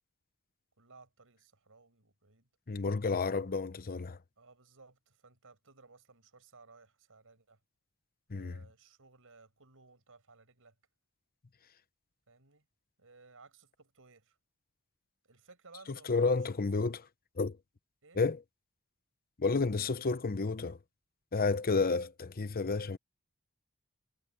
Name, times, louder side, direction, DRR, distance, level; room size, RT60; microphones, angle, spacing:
voice 1, 0.8-2.5 4.4-7.6 8.3-10.7 12.3-12.7 13.0-14.4 15.3-16.3 18.0-18.2 21.7-22.1, right 4 dB, 65° right, 6.6 m, -59 dB
voice 2, 2.7-4.2 8.3-8.6 15.9-17.1 17.4-17.6 18.2-18.4 19.4-20.8 21.3-23.0, left 4 dB, 45° left, 0.8 m, -31 dB
head